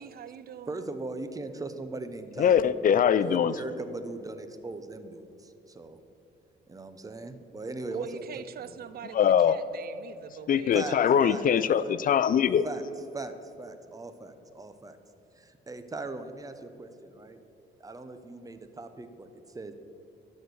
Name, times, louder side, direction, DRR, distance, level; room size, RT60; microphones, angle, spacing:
voice 1, 0.0-0.9 7.9-11.6, right 8 dB, 50° right, 14 dB, 0.5 m, -44 dB
voice 2, 0.7-2.7 3.2-6.0 6.7-8.3 10.7-11.0 11.3-11.4 11.8-11.9 12.6-12.8 13.1-15.0 15.4-17.4 17.8-19.7, right 2 dB, 15° right, 9 dB, 0.7 m, -39 dB
voice 3, 2.4-3.6 9.1-9.6 10.5-12.7, left 8 dB, 45° left, 16 dB, 0.4 m, -22 dB
11.5 x 4.3 x 6.3 m, 3.0 s
cardioid pair, 90°, 20 cm